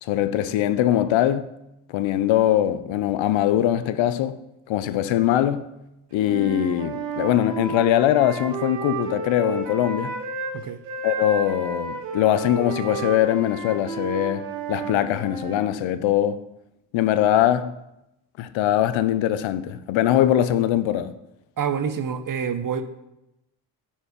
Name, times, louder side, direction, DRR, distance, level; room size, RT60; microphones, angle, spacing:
voice 1, 0.0-1.5 1.9-4.4 4.7-5.7 6.1-10.1 11.0-16.4 16.9-17.7 18.4-21.1, left 12 dB, 70° left, 0.7 m, -22 dB
Wind instrument woodwind instrument, 6.1-10.5 10.8-15.7, right 4 dB, 90° right, 1.9 m, -32 dB
voice 2, 21.6-22.8, right 7 dB, 40° right, 1.0 m, -27 dB
10.5 x 4.5 x 5.2 m
hypercardioid pair, 50°, 48 cm